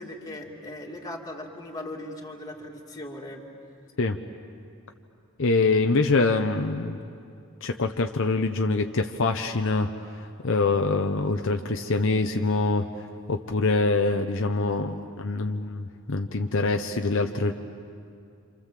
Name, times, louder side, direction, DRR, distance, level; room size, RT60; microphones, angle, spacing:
voice 1, 0.0-3.4, left 1 dB, 15° left, -1 dB, 2.6 m, -38 dB
voice 2, 5.4-7.0 7.6-9.9 10.4-12.9 13.3-17.5, left 3 dB, 60° left, 5 dB, 0.9 m, -24 dB
28.5 x 27.5 x 7.6 m, 2.5 s
head